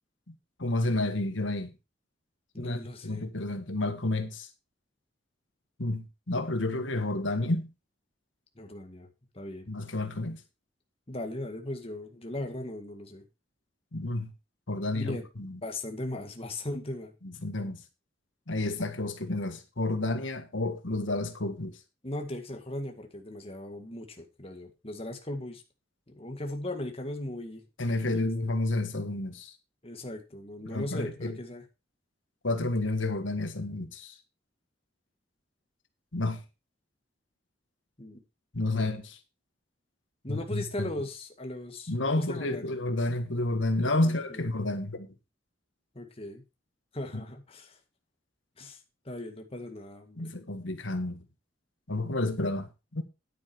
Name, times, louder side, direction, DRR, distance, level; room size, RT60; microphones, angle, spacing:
voice 1, 0.6-1.7 2.6-2.8 3.0-4.5 5.8-7.7 9.7-10.4 13.9-14.3 14.7-15.6 17.2-17.8 18.5-21.8 27.8-29.5 30.6-31.4 32.4-34.2 36.1-36.4 38.5-39.2 40.3-40.9 41.9-45.1 47.1-47.2 50.2-51.2 51.9-53.0, left 2 dB, 85° left, 1.6 m, -30 dB
voice 2, 2.5-3.2 8.6-9.1 9.3-9.8 11.1-13.2 14.9-15.3 15.6-17.1 22.0-25.6 26.1-27.6 28.0-28.3 29.8-31.6 38.0-38.2 38.7-39.0 40.2-42.8 44.0-44.5 45.9-46.4 46.9-47.8 48.6-48.8 49.1-50.3, left 1 dB, 30° left, 1.9 m, -38 dB
10.0 x 8.7 x 4.5 m
head